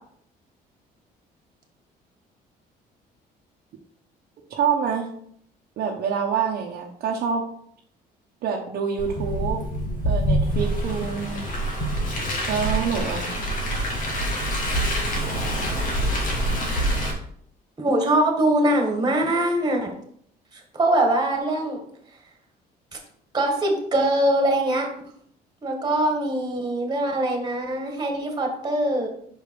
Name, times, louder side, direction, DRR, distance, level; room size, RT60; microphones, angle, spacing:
voice 1, 4.5-5.1 5.8-7.5 8.4-9.6 10.0-11.4 12.5-13.3, right 6 dB, 70° right, -1 dB, 1.0 m, -26 dB
Car, 9.0-17.1, equal, 50° left, 2.0 m, -25 dB
voice 2, 17.8-19.9 20.7-21.8 23.3-24.9 25.6-29.1, right 1 dB, 25° right, 3 dB, 1.8 m, -22 dB
5.5 x 5.1 x 4.7 m, 0.65 s
cardioid pair, 110°, 17 cm